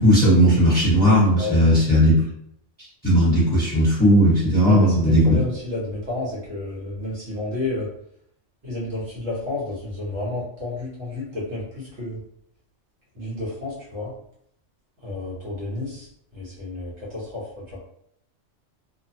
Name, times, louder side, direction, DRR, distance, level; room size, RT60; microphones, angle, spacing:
voice 1, 0.0-2.2 3.0-5.3, equal, 10° left, -9 dB, 1.1 m, -16 dB
voice 2, 1.4-1.9 4.6-7.9 8.6-12.2 13.1-14.1 15.0-16.1 16.3-17.6, left 2 dB, 65° right, -7 dB, 1.4 m, -30 dB
2.8 x 2.2 x 2.7 m, 0.71 s
omnidirectional pair, 1.3 m